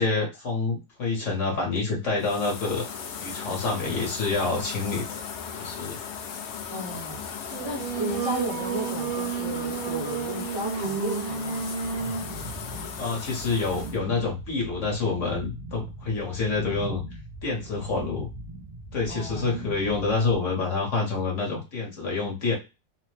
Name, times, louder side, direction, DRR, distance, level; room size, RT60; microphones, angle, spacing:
voice 1, 0.0-2.9 3.2-5.2 5.5-6.0 13.0-17.0 17.4-18.3 18.9-22.6, left 4 dB, 55° left, -1 dB, 1.0 m, -27 dB
sound 1, 2.2-14.0, left 7 dB, 80° left, 0.6 m, -37 dB
voice 2, 6.7-11.7 19.1-19.5, right 1 dB, 25° right, -3 dB, 0.5 m, -34 dB
Singing, 7.5-12.4, right 6 dB, 70° right, 1.1 m, -31 dB
sound 2, 11.8-20.3, right 2 dB, 90° right, 0.4 m, -40 dB
2.8 x 2.0 x 3.1 m, 0.27 s
omnidirectional pair, 1.8 m